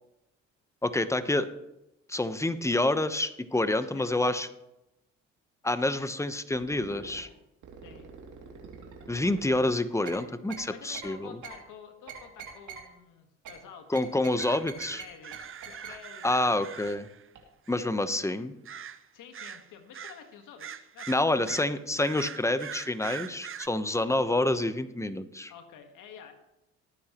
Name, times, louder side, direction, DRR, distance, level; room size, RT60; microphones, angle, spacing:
voice 1, 0.8-1.5 2.1-4.5 5.6-7.3 9.1-11.3 13.9-15.0 16.2-17.1 17.7-18.5 21.1-25.5, left 2 dB, 10° left, 12 dB, 1.0 m, -28 dB
voice 2, 3.8-4.2 7.8-8.1 10.7-16.8 19.1-21.8 24.1-24.4 25.5-26.3, left 7 dB, 75° left, 6 dB, 1.6 m, -50 dB
sound 1, 6.5-7.2 7.6-9.6 10.0-10.2 10.5-10.6 10.9-11.1 11.4-11.6 12.1-12.8 13.4-13.5 13.9-15.0 15.3-15.4 15.6-15.9 16.4-16.5 16.9-17.0 17.3-17.4, right 7 dB, 65° right, 2.7 m, -43 dB
sound 2, 14.4-17.3 17.7-17.9 18.7-19.1 19.3-20.2 20.6-23.7, right 8 dB, 40° right, 0.8 m, -43 dB
19.0 x 9.5 x 3.1 m, 0.90 s
supercardioid pair, 55°, 32 cm